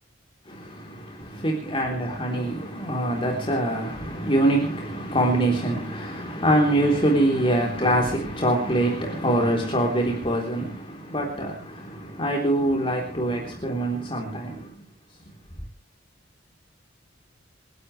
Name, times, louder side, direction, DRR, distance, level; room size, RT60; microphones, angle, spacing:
voice 1, 0.5-14.8, right 1 dB, 30° left, 3.6 m, -24 dB
29.0 x 12.0 x 3.3 m
head